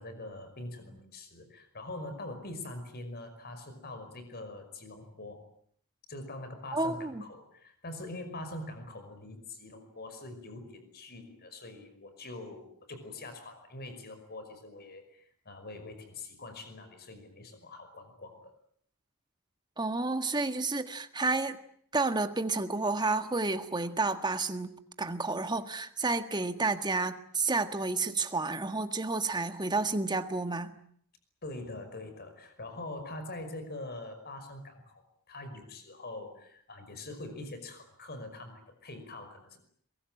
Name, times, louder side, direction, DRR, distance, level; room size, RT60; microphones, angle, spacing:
voice 1, 0.0-5.4 6.1-18.5 31.4-39.6, left 2 dB, 45° left, 8 dB, 5.5 m, -44 dB
voice 2, 6.7-7.2 19.8-21.6 21.9-30.8, right 3 dB, 20° right, 9 dB, 1.6 m, -30 dB
23.5 x 22.5 x 9.0 m, 0.62 s
head